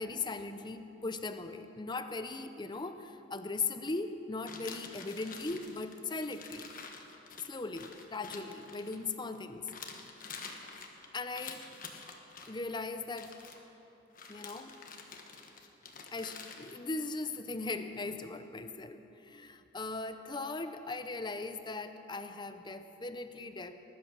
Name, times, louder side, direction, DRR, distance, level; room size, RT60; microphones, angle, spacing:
voice 1, 0.0-6.7 7.4-9.6 11.1-11.6 12.5-13.3 14.3-14.7 16.1-23.7, left 3 dB, 25° left, 9 dB, 0.7 m, -39 dB
sound 1, 4.5-9.4 9.7-12.5 13.1-13.6 14.1-16.7, left 5 dB, 45° left, 1.4 m, -48 dB
20.5 x 11.0 x 6.4 m, 3.0 s
head